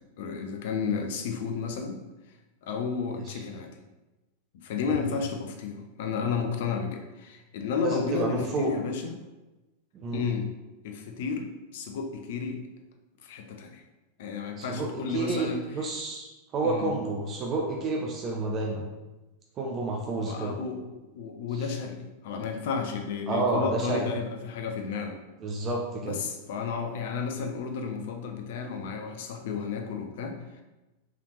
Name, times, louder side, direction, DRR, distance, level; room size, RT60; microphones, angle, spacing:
voice 1, 0.0-2.0 2.6-3.7 4.5-9.2 10.1-10.5 10.8-12.6 13.2-13.8 14.2-15.7 16.6-16.9 20.2-20.9 21.2-25.2 26.0-30.4, left 5 dB, 55° left, 5 dB, 0.6 m, -32 dB
voice 2, 7.8-8.7 9.9-10.2 14.6-16.3 16.5-18.9 19.6-20.6 21.5-21.7 23.3-24.1 25.4-26.2, right 3 dB, 30° right, -1 dB, 0.6 m, -30 dB
4.8 x 3.4 x 3.1 m, 1.1 s
figure-of-eight pair, 90°, 0 cm